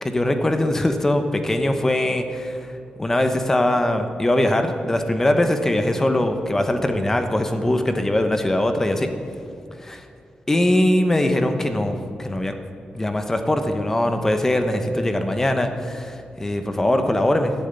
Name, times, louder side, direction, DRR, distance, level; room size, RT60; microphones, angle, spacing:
voice 1, 0.0-2.6 3.0-9.1 9.9-10.0 10.5-12.5 12.9-17.5, left 1 dB, 15° left, 6 dB, 1.0 m, -21 dB
14.0 x 7.2 x 9.5 m, 2.4 s
wide cardioid pair, 155°, 3 cm